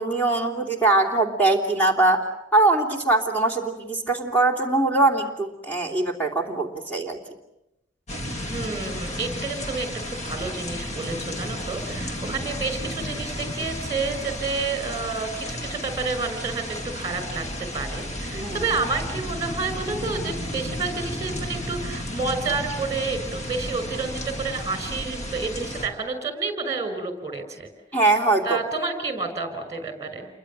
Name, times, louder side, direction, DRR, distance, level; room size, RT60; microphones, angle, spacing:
voice 1, 0.0-2.2 2.5-7.2 18.2-18.7 27.9-28.6, right 2 dB, 10° left, 2 dB, 3.2 m, -22 dB
sound 1, 8.1-25.9, left 1 dB, 35° left, 2.8 m, -33 dB
voice 2, 8.5-27.7 28.4-30.3, right 4 dB, 15° right, 9 dB, 5.6 m, -30 dB
29.0 x 24.0 x 7.5 m, 0.86 s
head